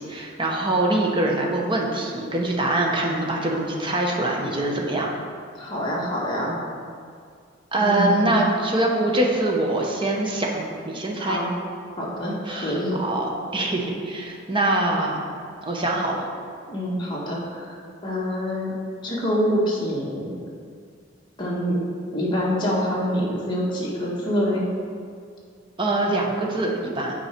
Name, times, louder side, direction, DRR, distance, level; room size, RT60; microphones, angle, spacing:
voice 1, 0.0-5.1 7.7-11.4 12.5-15.2 15.7-16.3 25.8-27.1, right 2 dB, 25° right, -1 dB, 0.9 m, -24 dB
voice 2, 5.5-6.5 7.8-8.4 11.2-11.5 11.9-13.0 16.7-17.8 18.0-18.7 19.0-20.4 21.4-21.8 22.1-24.6, equal, 25° left, -5 dB, 1.5 m, -26 dB
8.3 x 4.8 x 4.4 m, 2.2 s
head